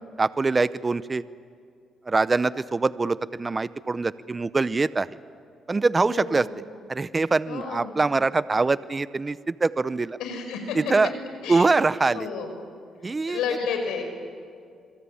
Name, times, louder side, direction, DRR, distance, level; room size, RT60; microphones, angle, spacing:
voice 1, 0.2-1.2 2.1-5.1 5.7-6.5 6.9-10.2 10.9-11.1 11.5-12.3 13.0-13.4, right 3 dB, 25° right, 16 dB, 0.7 m, -23 dB
voice 2, 6.0-6.5 7.5-7.9 10.2-10.9 11.4-11.8 12.1-12.5 13.0-14.0, left 6 dB, 90° left, 5 dB, 5.1 m, -31 dB
26.5 x 23.0 x 8.6 m, 2.3 s
cardioid pair, 90°, 0 cm